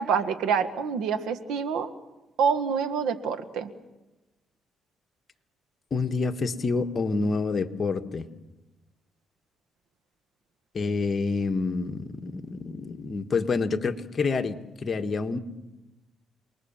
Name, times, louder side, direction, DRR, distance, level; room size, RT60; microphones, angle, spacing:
voice 1, 0.0-1.9 2.4-3.7, right 6 dB, 90° right, 10 dB, 1.8 m, -26 dB
voice 2, 5.9-8.3 10.7-15.4, left 4 dB, 40° left, 6 dB, 1.7 m, -28 dB
28.5 x 21.0 x 7.4 m, 1.0 s
cardioid pair, 90°, 0 cm